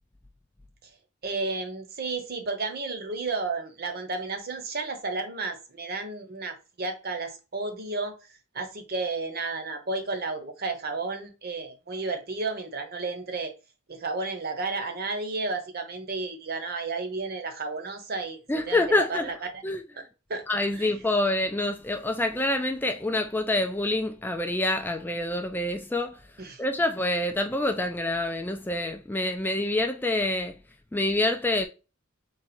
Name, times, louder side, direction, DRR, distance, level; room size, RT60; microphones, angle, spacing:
voice 1, 1.2-8.2 8.5-13.5 13.9-18.4 18.7-19.6 20.3-20.4 20.7-20.9 26.4-26.6, right 3 dB, 50° right, 0.9 m, -32 dB
voice 2, 18.5-19.2 19.6-19.8 20.5-26.2 26.6-30.5 30.9-31.7, left 2 dB, 10° left, 0.4 m, -26 dB
4.0 x 2.4 x 4.2 m
head